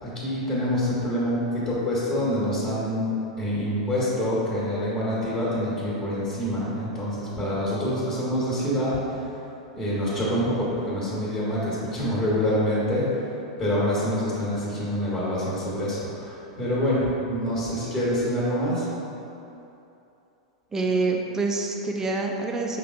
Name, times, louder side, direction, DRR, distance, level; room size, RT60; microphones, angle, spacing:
voice 1, 0.0-9.2 9.7-13.1 13.6-18.9, equal, 30° left, -9 dB, 1.4 m, -26 dB
voice 2, 20.7-22.8, right 3 dB, 15° right, 1 dB, 0.4 m, -26 dB
5.4 x 3.4 x 2.5 m, 2.9 s
hypercardioid pair, 95°, 3 cm